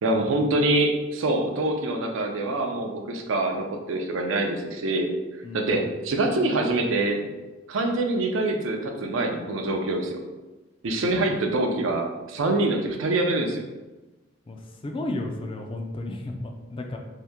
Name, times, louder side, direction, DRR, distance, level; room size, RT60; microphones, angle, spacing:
voice 1, 0.0-5.1 5.5-7.3 7.7-10.2 10.8-13.6, right 2 dB, 75° right, 3 dB, 0.5 m, -25 dB
voice 2, 5.4-5.9 11.1-11.4 14.5-17.0, left 2 dB, 25° left, 3 dB, 0.3 m, -34 dB
2.8 x 2.7 x 3.4 m, 1.1 s
head